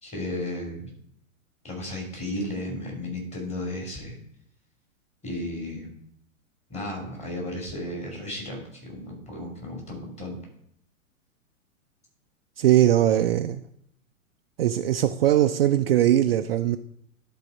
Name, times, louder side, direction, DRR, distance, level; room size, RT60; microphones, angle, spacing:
voice 1, 0.0-0.9 1.6-4.2 5.2-5.9 6.7-10.4, left 1 dB, 15° left, 3.2 m, -34 dB
voice 2, 12.6-13.6 14.6-16.8, right 12 dB, 45° right, 0.5 m, -20 dB
12.0 x 4.1 x 5.3 m
figure-of-eight pair, 105°, 41 cm